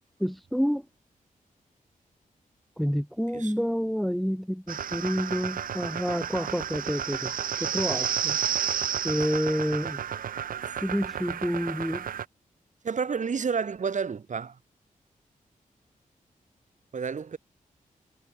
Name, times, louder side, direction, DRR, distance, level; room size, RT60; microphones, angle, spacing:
voice 1, 0.2-0.9 2.8-8.8 9.0-10.0 10.8-12.1, equal, ahead, 1.5 m, -29 dB
sound 1, 4.7-12.2, right 8 dB, 80° right, 0.8 m, -31 dB
voice 2, 12.8-14.6 16.9-17.4, right 6 dB, 60° right, 5.2 m, -30 dB
wide cardioid pair, 110°, 14 cm